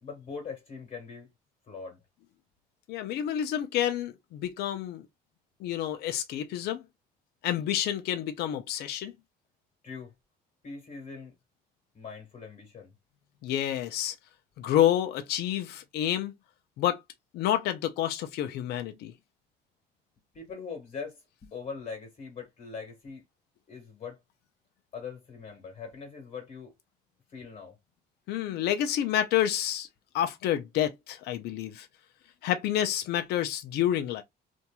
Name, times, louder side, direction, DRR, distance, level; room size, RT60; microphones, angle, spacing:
voice 1, 0.0-1.3 1.7-2.0 9.8-10.1 10.6-11.3 11.9-12.9 20.3-23.2 23.7-24.2 24.9-26.7 27.3-27.8, left 5 dB, 45° left, 1.3 m, -41 dB
voice 2, 2.9-5.1 5.6-6.8 7.4-9.1 13.4-14.1 14.6-16.3 16.8-17.0 17.3-19.1 28.3-29.9 30.1-31.9 32.4-34.2, left 11 dB, 75° left, 0.5 m, -29 dB
2.9 x 2.6 x 2.2 m
cardioid pair, 110°, 17 cm